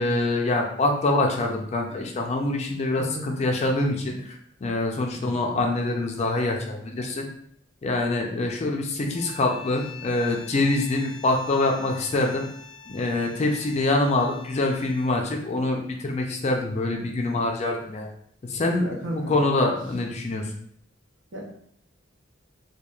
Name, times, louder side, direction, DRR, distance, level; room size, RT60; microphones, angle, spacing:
voice 1, 0.0-7.3 7.8-12.5 12.9-18.1 18.4-18.9 19.1-20.5, left 2 dB, 35° left, 2 dB, 0.3 m, -25 dB
voice 2, 2.8-3.3 5.1-5.4 18.8-19.3 21.3-21.4, right 1 dB, 65° right, -2 dB, 0.7 m, -34 dB
sound 1, 9.1-15.3, left 6 dB, 5° left, 0.8 m, -45 dB
3.0 x 2.2 x 2.3 m, 0.65 s
head